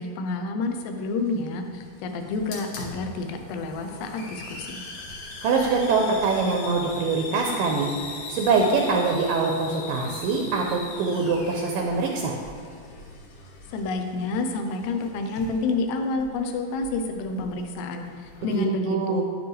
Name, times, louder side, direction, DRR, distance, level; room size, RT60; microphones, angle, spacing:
voice 1, 0.0-4.8 13.7-19.2, left 3 dB, 90° left, 5 dB, 2.9 m, -29 dB
Hiss, 0.7-18.6, left 3 dB, 65° left, 2.3 m, -41 dB
voice 2, 5.4-7.9 8.3-12.3 18.5-19.2, right 4 dB, 85° right, 0 dB, 2.0 m, -24 dB
9.2 x 9.1 x 3.3 m, 2.1 s
omnidirectional pair, 4.7 m